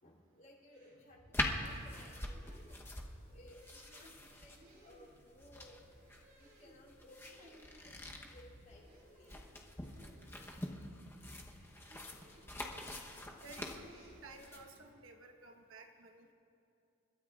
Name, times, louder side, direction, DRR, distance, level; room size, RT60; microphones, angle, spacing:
voice 1, 0.0-2.8 3.3-5.8 6.3-9.4, left 1 dB, 45° left, -5 dB, 3.1 m, -60 dB
sound 1, 0.7-14.8, right 1 dB, 50° right, 3.5 m, -61 dB
sound 2, 1.3-14.6, left 1 dB, 10° left, 1.0 m, -44 dB
voice 2, 13.4-16.3, right 3 dB, 70° right, 3 dB, 1.3 m, -55 dB
29.5 x 13.0 x 2.5 m, 2.8 s
head